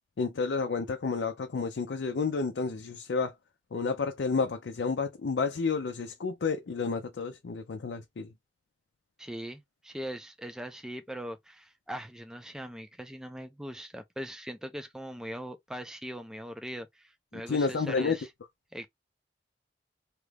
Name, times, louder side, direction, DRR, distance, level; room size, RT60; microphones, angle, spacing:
voice 1, 0.2-3.3 3.7-8.3 17.3-18.2, left 4 dB, 80° left, 0.5 m, -30 dB
voice 2, 9.2-18.3 18.7-18.9, equal, 5° right, 0.4 m, -41 dB
2.9 x 2.4 x 3.2 m
head